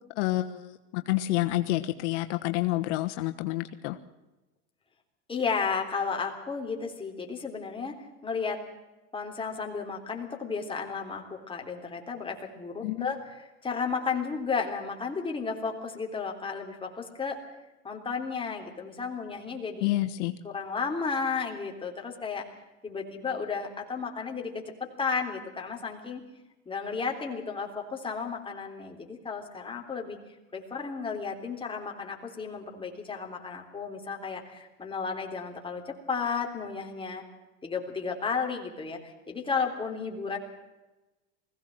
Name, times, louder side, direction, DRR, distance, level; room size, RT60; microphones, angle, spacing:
voice 1, 0.1-4.0 12.8-13.1 19.8-20.3, left 16 dB, 70° left, 7 dB, 1.3 m, -29 dB
voice 2, 5.3-7.9 8.2-8.6 9.1-13.2 13.6-17.4 17.8-19.9 20.4-22.4 22.8-24.5 24.8-26.2 26.7-30.2 30.5-37.2 37.6-40.4, left 5 dB, 15° left, 1 dB, 3.5 m, -33 dB
20.5 x 16.0 x 7.8 m, 1.1 s
supercardioid pair, 125°, 37 cm